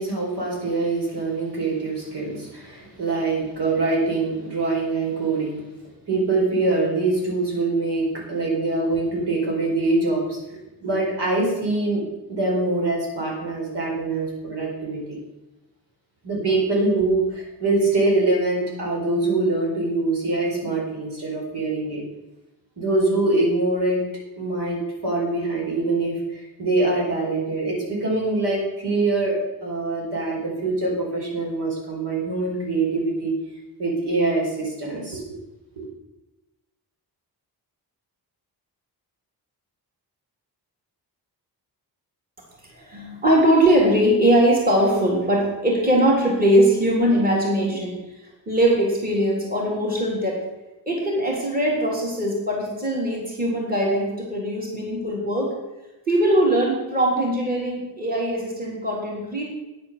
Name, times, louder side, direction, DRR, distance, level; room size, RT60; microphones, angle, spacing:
voice 1, 0.0-5.6 6.1-12.0 12.3-15.2 16.2-22.0 22.8-24.0 24.4-33.3 33.8-35.2 35.8-35.9, right 2 dB, 75° right, -2 dB, 4.7 m, -24 dB
voice 2, 42.7-48.0 48.5-50.4 50.8-55.5 56.1-59.4, right 1 dB, 20° right, -3 dB, 3.4 m, -21 dB
9.7 x 9.4 x 6.7 m, 1.0 s
wide cardioid pair, 145°, 40 cm